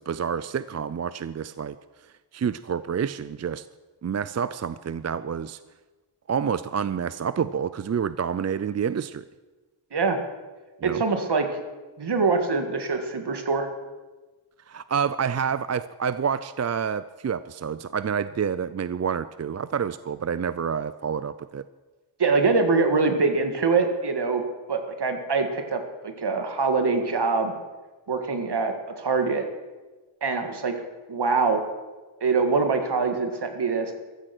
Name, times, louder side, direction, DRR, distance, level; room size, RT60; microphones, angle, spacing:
voice 1, 0.0-1.8 2.3-3.6 4.0-5.6 6.3-9.2 10.8-11.0 14.7-21.6, right 7 dB, 35° right, 15 dB, 0.4 m, -28 dB
voice 2, 10.8-11.5 12.0-13.7 22.2-24.4 24.7-27.5 28.1-29.4 30.2-30.8 31.1-31.6 32.2-33.9, right 4 dB, 55° right, 6 dB, 2.1 m, -24 dB
15.0 x 14.0 x 6.1 m, 1.2 s
wide cardioid pair, 135°, 48 cm